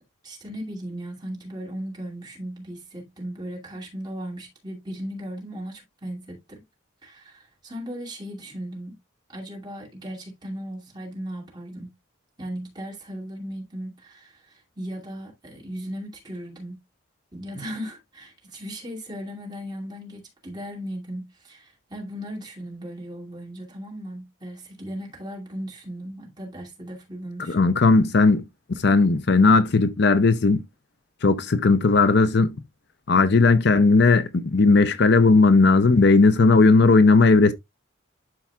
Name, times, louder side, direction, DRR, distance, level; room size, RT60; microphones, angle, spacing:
voice 1, 0.2-6.6 7.0-9.0 9.3-12.0 12.4-16.8 17.3-27.7, equal, 20° right, 2.5 m, -37 dB
voice 2, 27.5-28.4 28.7-30.6 31.2-32.5 33.1-37.5, left 3 dB, 55° left, 0.6 m, -17 dB
11.5 x 4.7 x 2.3 m
head